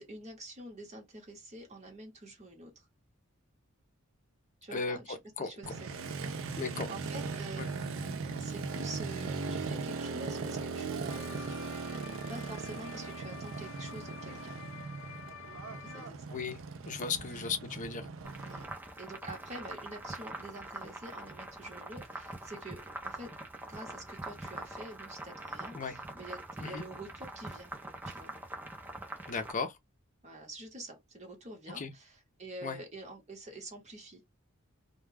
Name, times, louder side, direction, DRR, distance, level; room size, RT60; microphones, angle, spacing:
voice 1, 0.0-2.7 4.6-6.6 6.9-11.7 12.0-14.6 15.7-16.4 17.3-17.5 18.4-23.3 23.7-27.7 28.0-28.3 30.2-34.2, right 1 dB, 35° right, 1.0 m, -47 dB
voice 2, 4.7-5.7 6.6-6.9 7.6-7.7 16.3-16.6 16.8-18.1 25.7-26.0 26.6-26.8 29.3-29.8 31.8-31.9 32.6-32.8, left 5 dB, 40° left, 0.5 m, -36 dB
Motorcycle, 5.6-18.6, right 4 dB, 70° right, 0.5 m, -39 dB
sound 1, 11.1-16.1, left 8 dB, 90° left, 0.6 m, -49 dB
sound 2, 18.2-29.5, right 2 dB, 10° right, 0.5 m, -44 dB
2.2 x 2.2 x 3.2 m
head